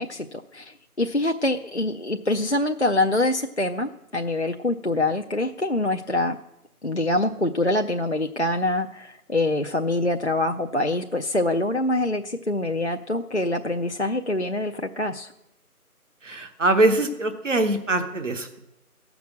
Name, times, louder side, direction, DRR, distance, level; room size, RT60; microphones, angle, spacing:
voice 1, 0.0-6.4 6.8-15.3, left 2 dB, 50° left, 3 dB, 0.4 m, -25 dB
voice 2, 16.2-18.6, right 2 dB, 55° right, 7 dB, 1.1 m, -23 dB
15.0 x 6.0 x 7.4 m, 0.88 s
figure-of-eight pair, 165°, 45 cm